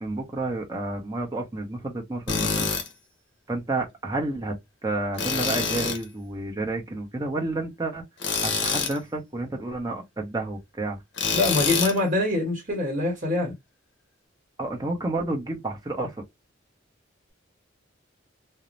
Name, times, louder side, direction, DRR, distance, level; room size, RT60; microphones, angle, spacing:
voice 1, 0.0-2.7 3.5-8.0 8.4-11.0 14.6-16.2, right 2 dB, 20° right, 0.6 m, -30 dB
Tools, 2.3-2.9 5.2-6.0 8.2-9.0 11.2-12.0, left 5 dB, 60° left, 0.8 m, -26 dB
voice 2, 11.3-13.5, left 2 dB, 40° right, 1.0 m, -24 dB
2.5 x 2.0 x 3.0 m
head